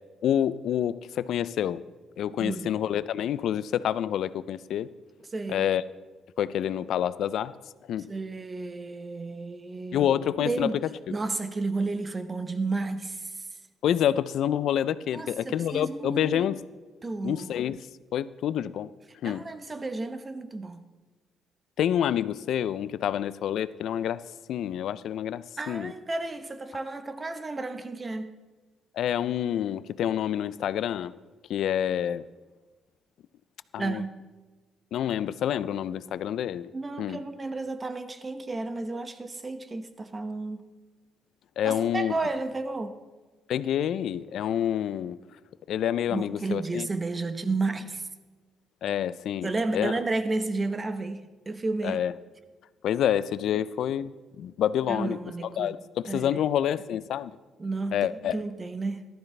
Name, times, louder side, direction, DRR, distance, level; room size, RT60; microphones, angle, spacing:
voice 1, 0.2-1.8 2.2-4.9 5.5-5.8 6.4-7.5 7.9-8.1 9.9-10.7 13.8-16.6 17.2-17.8 18.1-18.9 19.2-19.5 21.8-25.9 28.9-31.1 31.5-32.2 33.7-34.0 34.9-36.7 37.0-37.2 41.6-42.1 43.5-45.2 45.7-46.9 48.8-49.9 51.8-52.1 52.8-54.1 54.4-55.2 55.6-57.4 57.9-58.4, left 10 dB, 75° left, 0.4 m, -28 dB
voice 2, 2.4-2.7 5.3-5.7 8.1-10.1 10.4-10.8 11.1-13.5 15.1-16.5 17.0-17.6 19.2-20.8 25.6-28.4 33.8-34.1 36.7-40.7 41.6-43.0 46.1-48.1 49.4-52.0 53.5-53.6 54.9-55.8 56.1-56.4 57.6-59.0, right 3 dB, 25° right, 0.9 m, -32 dB
14.5 x 12.5 x 3.3 m
cardioid pair, 90°, 0 cm